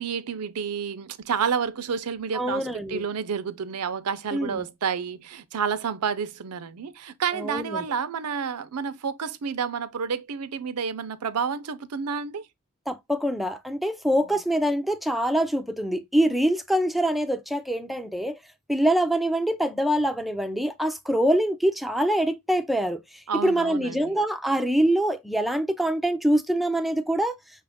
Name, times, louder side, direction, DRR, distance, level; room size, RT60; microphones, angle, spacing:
voice 1, 0.0-12.5 23.3-24.2, right 6 dB, 85° right, 0.6 m, -30 dB
voice 2, 2.3-3.0 4.3-4.6 7.4-7.8 12.9-18.4 18.7-23.0 23.3-27.4, right 1 dB, ahead, 0.4 m, -24 dB
5.8 x 2.5 x 3.4 m
head